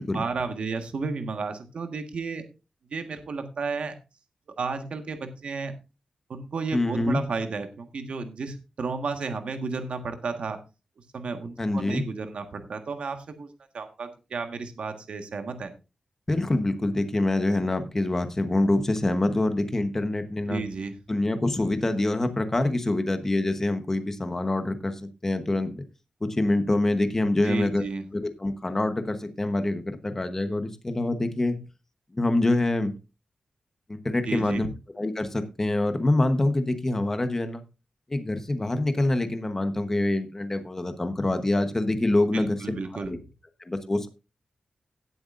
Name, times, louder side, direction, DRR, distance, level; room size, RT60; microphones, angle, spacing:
voice 1, 0.1-2.4 2.9-4.0 4.6-5.7 6.3-10.6 11.1-13.5 13.7-15.7 20.5-21.0 27.4-28.0 34.2-34.7 42.3-43.1, right 4 dB, 60° right, 1.5 m, -32 dB
voice 2, 6.7-7.2 11.6-12.0 16.3-20.6 21.1-24.9 25.2-25.8 26.2-27.8 28.1-31.6 32.1-32.9 33.9-34.7 35.0-37.6 38.1-42.8 43.1-43.2 43.7-44.1, left 2 dB, 20° left, 1.1 m, -25 dB
17.5 x 7.8 x 2.6 m
wide cardioid pair, 175°, 2 cm